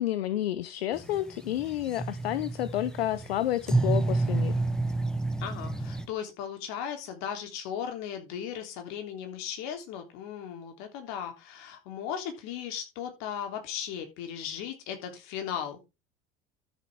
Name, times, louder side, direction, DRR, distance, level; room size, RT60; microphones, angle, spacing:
voice 1, 0.0-4.6, left 13 dB, 85° left, 0.7 m, -30 dB
sound 1, 0.9-6.1, right 2 dB, ahead, 1.7 m, -30 dB
voice 2, 5.4-15.8, left 8 dB, 65° left, 3.4 m, -37 dB
13.0 x 7.1 x 3.6 m
hypercardioid pair, 75°, 30 cm